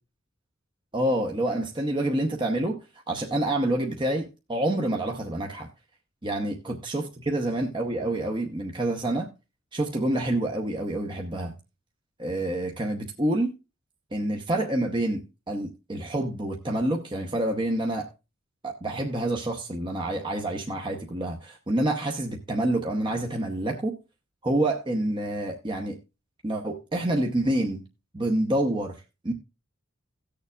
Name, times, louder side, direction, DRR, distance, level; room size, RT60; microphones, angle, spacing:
voice 1, 0.9-5.7 6.2-9.3 9.7-11.5 12.2-13.5 14.1-18.1 18.6-24.0 24.4-26.0 26.4-27.8 28.1-29.3, right 1 dB, 25° right, 0.8 m, -27 dB
17.5 x 6.7 x 2.4 m
head